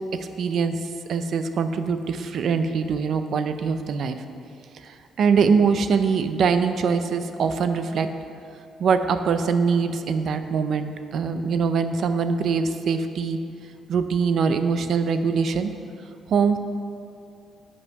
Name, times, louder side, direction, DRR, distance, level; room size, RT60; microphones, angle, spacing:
voice 1, 0.1-0.8 1.1-4.2 4.8-8.1 8.8-13.4 13.9-15.7 16.3-16.6, right 5 dB, 65° right, 9 dB, 0.5 m, -23 dB
8.1 x 5.5 x 5.2 m, 2.5 s
cardioid pair, 90°, 0 cm